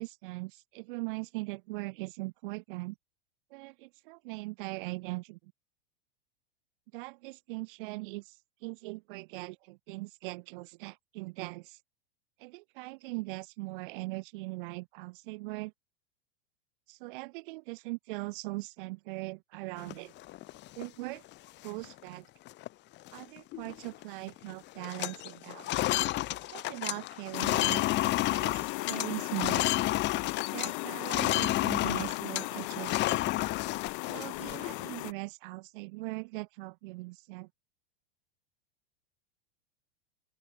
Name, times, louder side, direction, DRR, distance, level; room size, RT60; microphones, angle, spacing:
voice 1, 0.0-2.9 3.5-5.5 6.9-8.3 8.6-11.8 12.4-15.7 16.9-20.1 20.8-21.2 21.6-22.3 23.1-25.7 26.5-27.9 28.3-29.6 30.5-33.2 34.1-37.5, right 24 dB, 55° right, 1.6 m, -40 dB
sound 1, 19.8-20.9 21.3-21.4 21.7-22.0 22.5-22.7 23.0-24.0 24.3-24.5 24.8-30.7 31.0-34.9, left 17 dB, 35° left, 1.0 m, -31 dB
sound 2, 27.3-35.1, left 40 dB or more, 50° left, 3.3 m, -37 dB
open air
hypercardioid pair, 95°, 31 cm